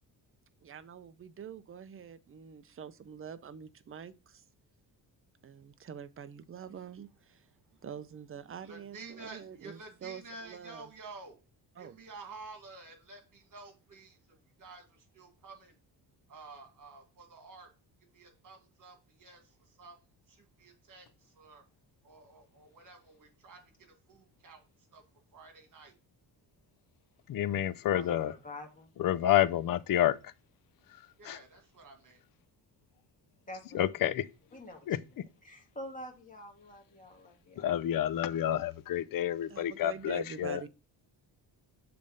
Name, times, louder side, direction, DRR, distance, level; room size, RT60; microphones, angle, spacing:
voice 1, 0.6-4.4 5.4-7.5 7.8-9.8 10.0-10.8 11.8-12.0 39.5-40.7, right 8 dB, 30° right, 0.6 m, -45 dB
voice 2, 7.4-8.1 8.6-11.5 11.8-15.9 16.3-21.7 22.0-26.0 31.2-32.3, right 3 dB, 50° right, 2.0 m, -51 dB
voice 3, 27.3-28.3 29.0-30.3 30.9-31.4 33.7-34.3 34.9-35.0 37.6-40.6, left 12 dB, 55° left, 0.6 m, -29 dB
voice 4, 27.9-28.9 33.5-33.9 34.5-34.9 35.4-37.7, left 1 dB, 20° left, 1.9 m, -46 dB
6.9 x 3.4 x 5.2 m
cardioid pair, 105°, 42 cm